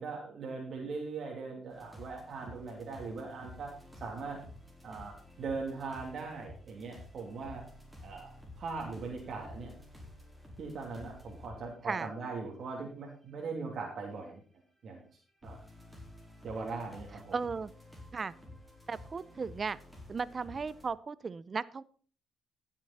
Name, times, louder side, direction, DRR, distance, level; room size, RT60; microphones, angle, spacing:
voice 1, 0.0-3.7 4.0-4.4 4.8-7.6 8.0-9.7 10.6-14.4 14.8-15.1 15.4-15.6 16.4-17.3, right 4 dB, 60° right, -1 dB, 2.9 m, -40 dB
sound 1, 1.7-11.6 12.3-12.4 13.3-13.4 15.4-20.9, left 1 dB, 5° right, 4.5 m, -52 dB
voice 2, 17.3-17.7 18.1-18.3 18.9-19.8 20.1-21.8, right 5 dB, 35° right, 19 dB, 0.6 m, -35 dB
15.5 x 7.4 x 4.3 m, 0.43 s
cardioid pair, 90°, 0 cm